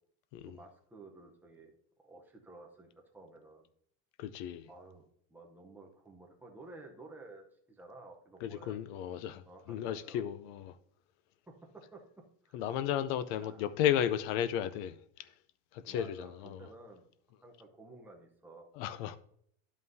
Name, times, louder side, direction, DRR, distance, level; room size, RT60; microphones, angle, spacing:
voice 1, 0.4-1.7 2.0-3.7 4.7-5.0 5.3-8.8 9.5-10.3 11.5-12.0 12.4-12.6 13.4-13.7 15.9-17.1 17.4-18.7, right 2 dB, 5° right, 0.6 m, -53 dB
voice 2, 4.2-4.7 8.4-9.4 9.7-10.8 12.5-15.3 15.7-16.7 18.8-19.2, left 10 dB, 50° left, 0.5 m, -34 dB
11.0 x 5.5 x 2.6 m
cardioid pair, 170°, 40 cm